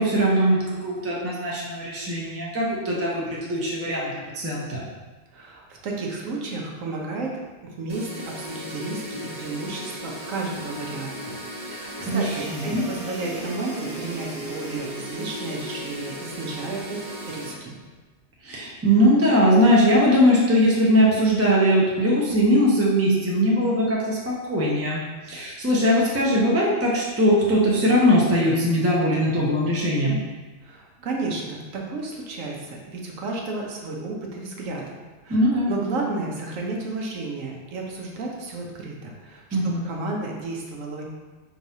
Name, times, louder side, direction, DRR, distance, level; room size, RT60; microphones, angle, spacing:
voice 1, 0.0-4.9 12.0-12.9 18.4-25.0 25.3-30.2 35.3-35.7 39.5-39.9, equal, 15° right, -5 dB, 0.5 m, -20 dB
voice 2, 5.3-7.3 7.6-11.3 11.6-17.0 17.3-17.8 30.6-41.1, right 3 dB, 85° right, -1 dB, 1.2 m, -32 dB
sound 1, 7.9-17.5, equal, 40° right, 1.0 m, -36 dB
4.7 x 3.8 x 2.7 m, 1.3 s
omnidirectional pair, 1.3 m